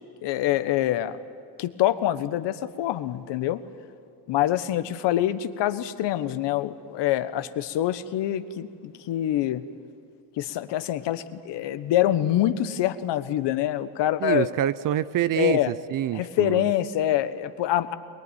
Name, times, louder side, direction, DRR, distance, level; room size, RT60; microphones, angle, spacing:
voice 1, 0.2-1.2 1.6-3.6 4.3-9.6 10.4-14.5 15.4-15.7 16.1-17.9, left 13 dB, 60° left, 12 dB, 1.2 m, -25 dB
voice 2, 14.2-16.7, right 12 dB, 45° right, 17 dB, 0.6 m, -26 dB
22.5 x 20.5 x 9.3 m, 2.4 s
supercardioid pair, 105°, 47 cm